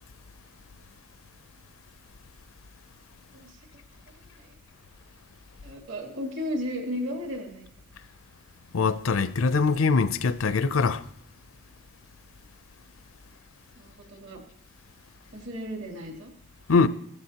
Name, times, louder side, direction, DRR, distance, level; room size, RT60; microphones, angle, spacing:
voice 1, 4.1-4.6 5.6-7.7 13.7-14.4 15.3-16.3, equal, 65° right, 2.9 m, -35 dB
voice 2, 8.7-11.0 16.7-16.9, left 4 dB, 80° left, 0.5 m, -22 dB
15.5 x 14.0 x 2.9 m
head